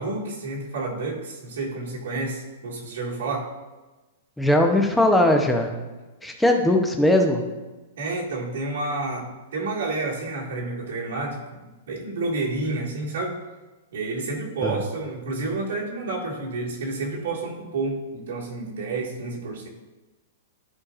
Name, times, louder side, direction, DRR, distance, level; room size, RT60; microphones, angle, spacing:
voice 1, 0.0-3.5 8.0-11.4 11.9-13.4 13.9-19.7, right 3 dB, 80° right, -4 dB, 1.9 m, -30 dB
voice 2, 4.4-5.7 6.2-7.4 14.6-14.8, left 1 dB, 5° left, 2 dB, 0.7 m, -19 dB
11.5 x 4.6 x 2.5 m, 1.2 s
hypercardioid pair, 155°, 0 cm